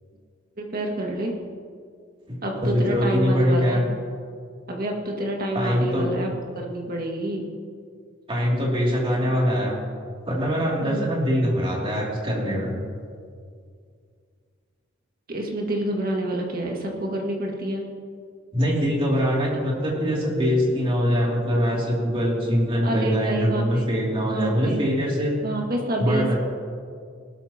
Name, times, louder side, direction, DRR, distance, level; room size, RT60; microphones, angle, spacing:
voice 1, 0.6-1.3 2.4-3.9 4.7-6.3 6.6-7.5 10.8-11.1 15.3-17.9 22.8-23.9 24.2-24.8 25.4-26.3, right 1 dB, 45° right, 0 dB, 1.9 m, -28 dB
voice 2, 2.3-3.8 5.5-6.1 8.3-9.8 10.3-12.7 18.5-25.4 26.0-26.4, equal, 25° right, -3 dB, 2.6 m, -23 dB
19.5 x 12.5 x 2.9 m, 2.2 s
head